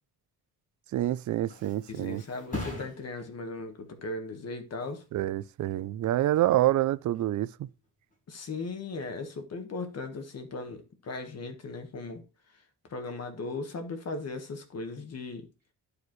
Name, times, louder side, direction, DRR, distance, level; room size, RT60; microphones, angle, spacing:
Thump thud, 0.9-8.4 8.8-9.2, left 2 dB, 20° left, 5.2 m, -45 dB
voice 1, 0.9-2.2 5.1-7.7, right 14 dB, 50° right, 0.4 m, -27 dB
voice 2, 1.9-5.0 8.3-12.2 12.9-15.5, left 3 dB, 40° left, 1.5 m, -37 dB
11.0 x 5.0 x 3.1 m
cardioid pair, 145°, 38 cm